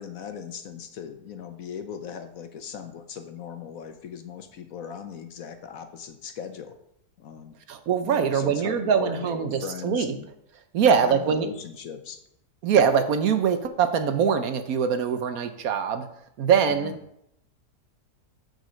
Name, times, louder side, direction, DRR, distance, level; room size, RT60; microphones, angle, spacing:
voice 1, 0.0-6.7 7.2-7.5 8.0-10.3 10.7-12.2 16.7-17.0, left 8 dB, 60° left, 8 dB, 1.2 m, -38 dB
voice 2, 7.7-10.1 10.7-11.5 12.6-16.1 16.4-16.9, right 7 dB, 65° right, 9 dB, 1.1 m, -23 dB
6.7 x 6.4 x 6.3 m, 0.77 s
omnidirectional pair, 1.7 m